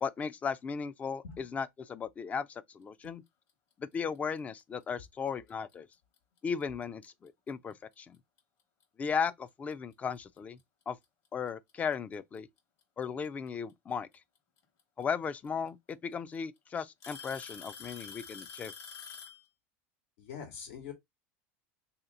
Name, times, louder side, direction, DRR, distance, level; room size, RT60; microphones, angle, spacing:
voice 1, 0.0-3.2 3.8-5.9 6.4-8.2 9.0-10.6 10.9-11.0 11.3-12.5 13.0-14.1 15.0-18.7, left 6 dB, 20° left, 0.3 m, -36 dB
Alarm / Tick-tock, 5.5-5.7 6.6-6.7 7.5-7.6 9.3-9.4 10.6-10.7 11.9-12.4 14.1-14.2 15.5-15.6 15.9-16.4 17.0-19.5, left 6 dB, 45° left, 1.2 m, -46 dB
voice 2, 20.2-20.9, left 7 dB, 80° left, 1.4 m, -44 dB
3.2 x 2.9 x 3.7 m
supercardioid pair, 130°, 7 cm